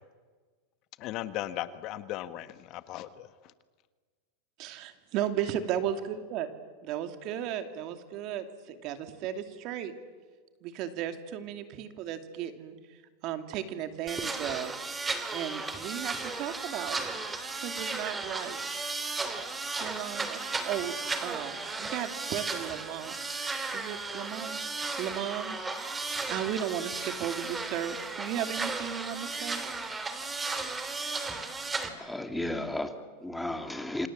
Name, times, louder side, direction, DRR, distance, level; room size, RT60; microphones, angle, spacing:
voice 1, 1.0-3.5, left 14 dB, 45° left, 12 dB, 1.5 m, -37 dB
voice 2, 4.6-6.5 6.8-9.9 10.6-12.7 13.2-14.7 15.3-17.1 17.6-18.8 19.8-20.9 21.2-23.2 23.7-24.6 25.0-29.6, right 10 dB, 50° right, 8 dB, 2.7 m, -35 dB
sound 1, 14.1-31.9, right 3 dB, 15° right, 3.0 m, -35 dB
sound 2, 16.1-25.0, right 6 dB, 90° right, 6.1 m, -51 dB
voice 3, 31.7-34.1, left 1 dB, 5° left, 7 dB, 2.6 m, -34 dB
28.5 x 26.5 x 7.6 m, 1.5 s
supercardioid pair, 125°, 0 cm